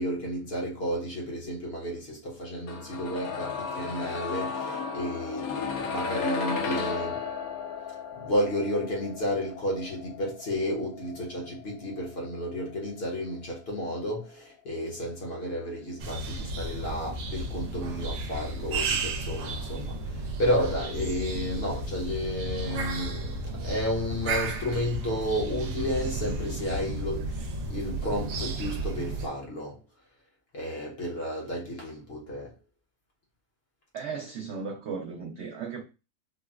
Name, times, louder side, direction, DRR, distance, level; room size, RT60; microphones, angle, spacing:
voice 1, 0.0-7.3 8.1-29.8 30.5-32.5, equal, 50° left, 0.8 m, -32 dB
sound 1, 2.7-14.5 14.8-14.9, left 5 dB, 70° left, 1.0 m, -35 dB
sound 2, 16.0-29.3, right 2 dB, 80° right, 1.2 m, -33 dB
voice 2, 33.9-35.8, right 5 dB, 65° right, 0.7 m, -36 dB
3.8 x 2.0 x 2.3 m
omnidirectional pair, 1.7 m